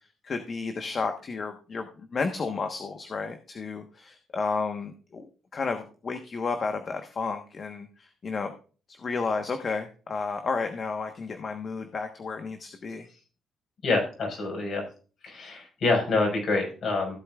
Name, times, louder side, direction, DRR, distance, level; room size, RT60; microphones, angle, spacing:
voice 1, 0.2-5.3 5.5-8.5 8.9-13.1, left 4 dB, 45° left, 6 dB, 1.2 m, -32 dB
voice 2, 13.8-14.8 15.2-17.2, left 3 dB, 60° left, 1 dB, 5.4 m, -26 dB
16.0 x 7.9 x 2.4 m, 0.37 s
cardioid pair, 90°, 0 cm